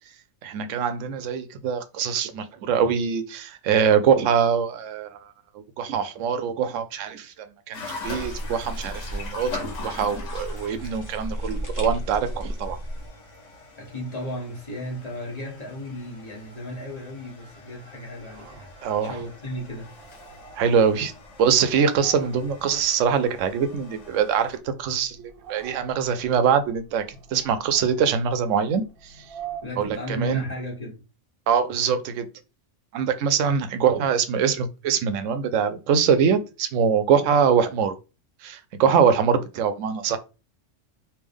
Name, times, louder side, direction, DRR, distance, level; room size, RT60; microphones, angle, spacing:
voice 1, 0.4-5.2 5.5-7.3 7.7-12.8 18.8-19.1 20.6-21.1 21.4-27.0 27.3-29.1 29.8-30.4 31.5-32.3 32.9-38.0 38.4-40.2, right 7 dB, 80° right, 0.9 m, -23 dB
sound 1, 7.7-24.6, left 3 dB, 75° left, 1.3 m, -42 dB
sound 2, 8.0-13.1, equal, 15° left, 0.9 m, -34 dB
voice 2, 13.8-19.9 29.6-31.0, equal, 35° left, 1.3 m, -35 dB
sound 3, 18.1-30.7, right 7 dB, 55° right, 0.7 m, -46 dB
3.4 x 2.7 x 3.5 m
omnidirectional pair, 1.3 m